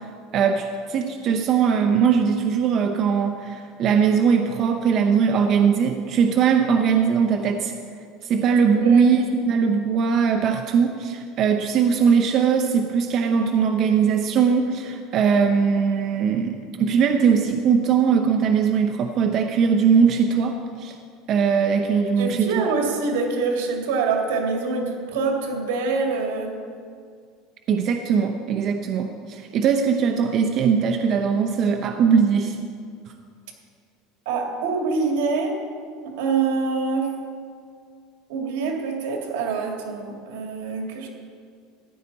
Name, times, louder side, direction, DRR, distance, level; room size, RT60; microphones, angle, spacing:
voice 1, 0.3-7.7 8.2-20.9 21.3-22.7 27.7-32.6, right 6 dB, 40° right, 5 dB, 0.6 m, -20 dB
voice 2, 8.7-9.1 22.2-26.6 34.3-35.6 36.0-37.2 38.3-41.1, right 4 dB, 80° right, 1 dB, 2.2 m, -25 dB
14.0 x 10.0 x 4.1 m, 2.2 s
cardioid pair, 155°, 0 cm